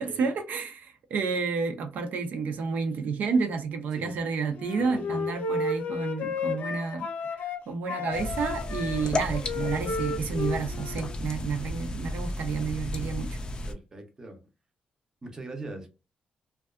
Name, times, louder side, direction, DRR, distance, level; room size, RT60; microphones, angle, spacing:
voice 1, 0.0-7.1 7.4-13.4, right 5 dB, 75° right, 0.5 m, -30 dB
Wind instrument woodwind instrument, 4.5-7.6 7.9-11.2, left 4 dB, 80° left, 0.5 m, -33 dB
voice 2, 4.8-5.2 13.7-14.4 15.2-15.9, right 2 dB, 20° right, 0.6 m, -42 dB
sound 1, 8.1-13.7, left 1 dB, 30° left, 0.4 m, -34 dB
2.5 x 2.2 x 2.3 m
wide cardioid pair, 160°, 3 cm